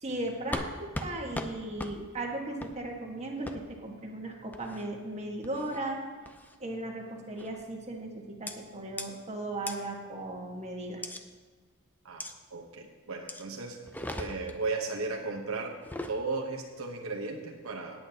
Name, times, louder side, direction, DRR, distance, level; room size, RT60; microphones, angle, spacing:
voice 1, 0.0-6.0 6.6-11.0, right 2 dB, 30° right, 0 dB, 1.5 m, -37 dB
sound 1, 0.5-0.7 0.9-1.1 1.3-1.5 1.8-1.9 2.6-2.7 3.5-3.6 4.5-4.9 5.4-5.8 6.3-6.6 7.4-7.6 8.5-8.6 9.0-9.1 9.7-9.8 11.0-11.2 12.2-12.3 13.3-13.4 13.8-14.6 15.7-16.2, left 1 dB, 10° left, 0.6 m, -38 dB
voice 2, 12.5-13.8 14.2-15.8 16.1-18.1, right 3 dB, 70° right, 1 dB, 1.0 m, -35 dB
18.0 x 8.7 x 2.9 m, 1.4 s
head